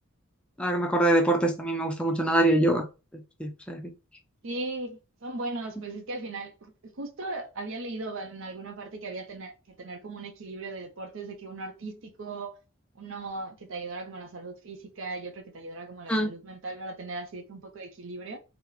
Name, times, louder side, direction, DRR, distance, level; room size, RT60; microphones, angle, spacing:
voice 1, 0.6-2.9 3.1-3.9 16.1-16.3, right 1 dB, 5° left, 0.4 m, -24 dB
voice 2, 4.4-12.6 13.0-18.4, right 2 dB, 65° right, 0.6 m, -38 dB
2.8 x 2.1 x 3.9 m
head